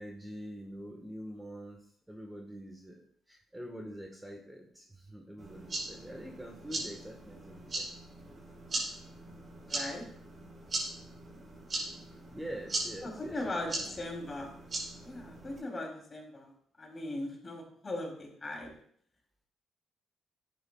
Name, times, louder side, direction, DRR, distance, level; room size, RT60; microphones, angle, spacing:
voice 1, 0.0-1.8 2.1-3.0 3.3-7.9 12.3-13.9, equal, 10° right, 1 dB, 1.4 m, -45 dB
sound 1, 5.4-15.6, right 2 dB, 40° right, 4.2 m, -40 dB
voice 2, 9.7-10.0 13.0-14.5 15.0-16.5 16.8-18.7, left 1 dB, 30° left, 0 dB, 3.1 m, -39 dB
11.0 x 8.8 x 2.4 m, 0.62 s
cardioid pair, 90°, 0 cm